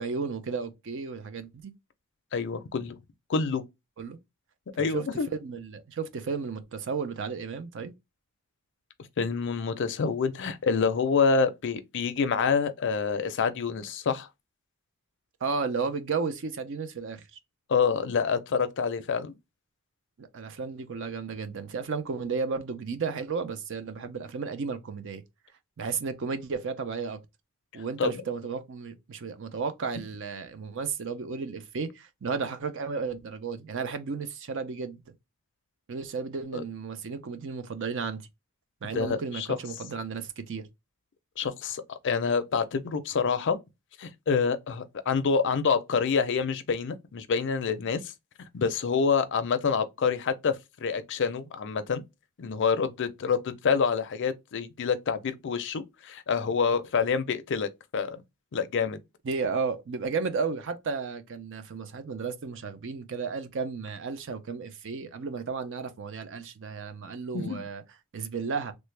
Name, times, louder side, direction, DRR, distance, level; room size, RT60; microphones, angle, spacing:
voice 1, 0.0-1.7 4.0-4.2 4.9-5.1 5.3-7.9 15.4-17.4 20.2-25.2 25.8-27.2 27.7-35.0 35.9-38.2 38.8-40.7 59.2-67.8 68.1-68.7, right 5 dB, 55° right, 0.5 m, -33 dB
voice 2, 2.3-3.0 3.3-3.6 4.8-5.3 9.2-14.3 17.7-19.3 28.0-28.1 36.5-36.6 38.9-39.5 41.4-43.6 44.0-48.1 48.5-50.6 50.8-52.0 52.4-58.2 58.5-59.0 67.3-67.6, left 5 dB, 55° left, 0.4 m, -27 dB
3.2 x 2.1 x 3.2 m
head